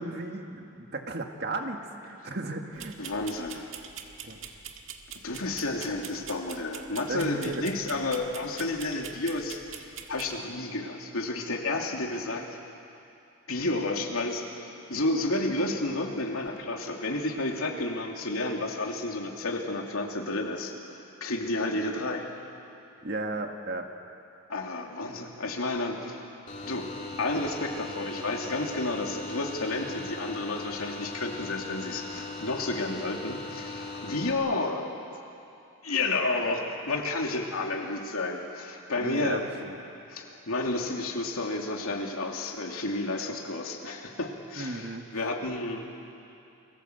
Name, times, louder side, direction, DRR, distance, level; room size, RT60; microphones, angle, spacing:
voice 1, 0.0-3.1 4.2-4.4 7.1-7.6 23.0-23.9 39.0-39.8 44.6-45.2, right 2 dB, 50° right, 4 dB, 1.9 m, -35 dB
sound 1, 2.8-10.4, right 7 dB, 65° right, 1.7 m, -44 dB
voice 2, 3.0-3.7 5.2-12.5 13.5-22.3 24.5-26.2 26.6-26.9 27.2-34.9 35.8-39.4 40.1-45.8, left 2 dB, 85° left, 1 dB, 2.8 m, -31 dB
sound 2, 26.5-34.3, left 3 dB, 35° left, 3.0 m, -39 dB
29.0 x 21.0 x 8.1 m, 2.7 s
head